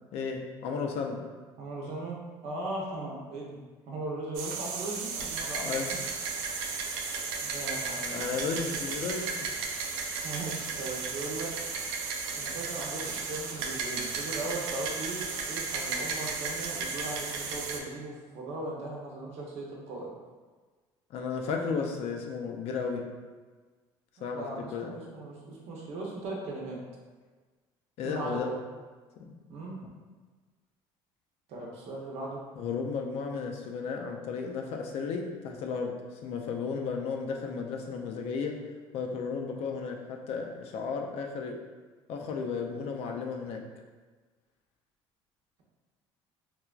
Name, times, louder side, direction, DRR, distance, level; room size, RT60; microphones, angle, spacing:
voice 1, 0.1-1.2 5.6-5.9 8.1-9.5 21.1-23.0 24.2-24.5 24.7-24.9 28.0-28.5 29.2-29.3 32.6-35.9 36.2-38.5 38.9-41.6 42.1-43.6, left 5 dB, 65° left, 2 dB, 0.4 m, -34 dB
voice 2, 1.6-2.2 2.4-6.0 7.4-8.4 8.7-8.8 10.2-11.5 12.4-20.1 24.2-26.8 28.0-28.6 29.5-29.9 31.5-32.4, right 2 dB, 65° right, -2 dB, 0.7 m, -38 dB
sound 1, 4.3-17.8, right 4 dB, 90° right, 0.4 m, -34 dB
3.2 x 2.2 x 2.4 m, 1.4 s
supercardioid pair, 90°, 11 cm